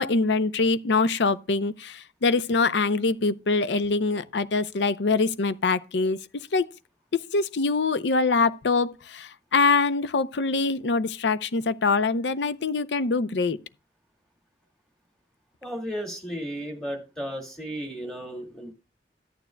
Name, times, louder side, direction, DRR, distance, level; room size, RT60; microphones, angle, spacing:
voice 1, 0.0-6.2 6.5-6.7 7.1-13.6, left 4 dB, 85° left, 0.6 m, -24 dB
voice 2, 15.6-18.7, equal, 5° left, 1.9 m, -34 dB
13.5 x 9.2 x 2.2 m
head